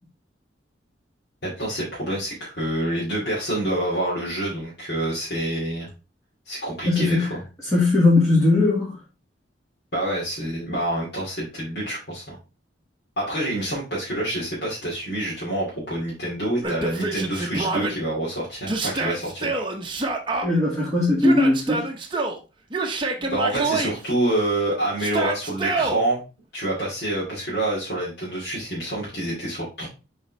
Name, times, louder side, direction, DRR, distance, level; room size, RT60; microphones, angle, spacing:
voice 1, 1.4-5.9 6.5-7.4 9.9-12.4 13.2-19.6 23.3-26.2 26.5-29.9, right 1 dB, 55° left, -7 dB, 2.5 m, -27 dB
voice 2, 6.8-7.4 7.7-8.9 20.4-21.9 23.2-23.3, left 2 dB, 15° left, -7 dB, 2.0 m, -19 dB
Yell, 16.6-17.9 18.7-20.5 21.2-22.4 22.7-23.9 25.0-26.0, right 3 dB, 25° right, 0.8 m, -26 dB
6.9 x 4.2 x 3.3 m, 0.31 s
head